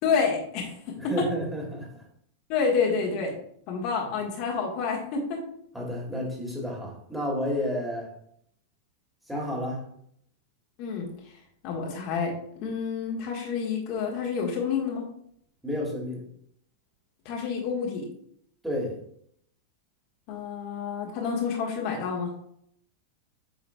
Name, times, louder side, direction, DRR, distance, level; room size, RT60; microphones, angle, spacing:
voice 1, 0.0-1.3 2.5-3.3 3.7-5.4 10.8-11.1 11.6-12.3 12.6-15.0 17.2-18.1 20.3-22.3, left 5 dB, 45° left, -1 dB, 1.5 m, -28 dB
voice 2, 1.0-2.0 5.7-8.2 9.3-9.9 15.6-16.2 18.6-19.0, equal, 5° right, -2 dB, 2.1 m, -31 dB
8.2 x 5.7 x 2.3 m, 0.67 s
figure-of-eight pair, 90°, 0 cm